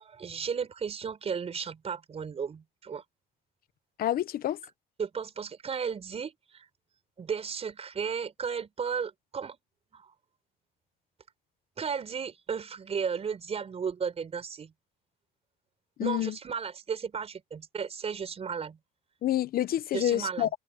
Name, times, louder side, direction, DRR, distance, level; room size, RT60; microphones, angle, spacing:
voice 1, 0.0-3.0 5.0-6.6 7.2-9.6 9.9-10.1 11.8-14.7 16.0-18.8 19.9-20.5, right 6 dB, 35° right, 4.9 m, -34 dB
voice 2, 4.0-4.6 16.0-16.3 19.2-20.5, left 12 dB, 60° left, 1.0 m, -28 dB
cardioid pair, 110°, 17 cm